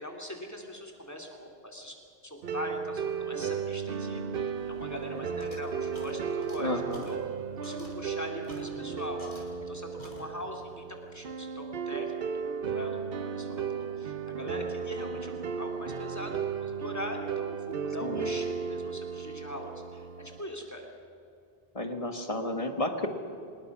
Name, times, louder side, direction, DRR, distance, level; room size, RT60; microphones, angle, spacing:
voice 1, 0.0-2.0 2.2-6.7 7.0-7.2 7.6-10.8 11.1-12.3 12.7-16.3 16.6-20.8, left 1 dB, 15° left, 1 dB, 2.9 m, -41 dB
sound 1, 2.4-20.4, right 6 dB, 65° right, 1.0 m, -35 dB
sound 2, 4.6-9.7 10.0-10.7, left 1 dB, 50° left, 4.4 m, -50 dB
voice 2, 6.6-7.1 18.0-18.3 21.7-23.1, left 1 dB, 35° left, 6 dB, 1.6 m, -32 dB
25.0 x 20.5 x 6.1 m, 2.5 s
omnidirectional pair, 1.0 m